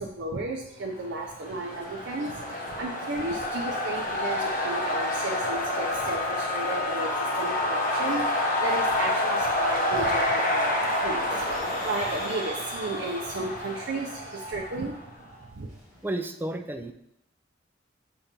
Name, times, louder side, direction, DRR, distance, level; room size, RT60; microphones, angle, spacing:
voice 1, 0.0-14.9 15.6-15.7, right 2 dB, 65° right, 0 dB, 0.6 m, -34 dB
sound 1, 1.3-15.1, left 1 dB, 45° left, 1.0 m, -28 dB
sound 2, 1.4-16.3, left 1 dB, 15° left, 2.3 m, -45 dB
Wind instrument woodwind instrument, 4.6-9.2, left 13 dB, 85° left, 0.3 m, -38 dB
voice 2, 16.0-16.9, right 1 dB, 10° right, 6 dB, 0.4 m, -32 dB
7.0 x 2.9 x 5.2 m, 0.78 s
head